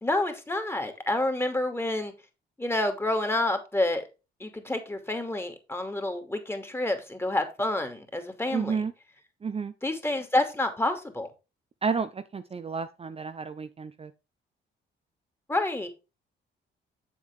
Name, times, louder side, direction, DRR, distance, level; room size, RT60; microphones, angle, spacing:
voice 1, 0.0-2.1 2.6-4.1 4.4-8.8 9.8-11.3 15.5-15.9, left 2 dB, 10° left, 2.5 m, -28 dB
voice 2, 8.5-8.9 9.4-9.7 11.8-14.1, right 5 dB, 30° right, 0.7 m, -31 dB
7.8 x 7.5 x 3.6 m
cardioid pair, 90°, 20 cm